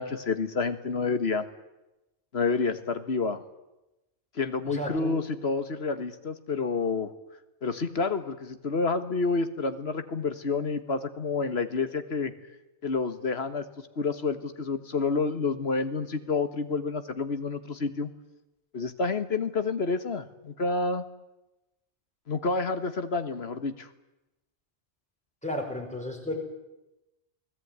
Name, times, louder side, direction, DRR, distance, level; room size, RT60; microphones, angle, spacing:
voice 1, 0.0-1.5 2.3-3.4 4.4-7.1 7.6-12.3 12.8-18.1 18.7-21.1 22.3-23.9, left 4 dB, 70° left, 10 dB, 1.8 m, -29 dB
voice 2, 4.7-5.2 25.4-26.4, left 1 dB, 5° left, 1 dB, 5.5 m, -33 dB
29.0 x 18.0 x 9.6 m, 0.98 s
omnidirectional pair, 1.1 m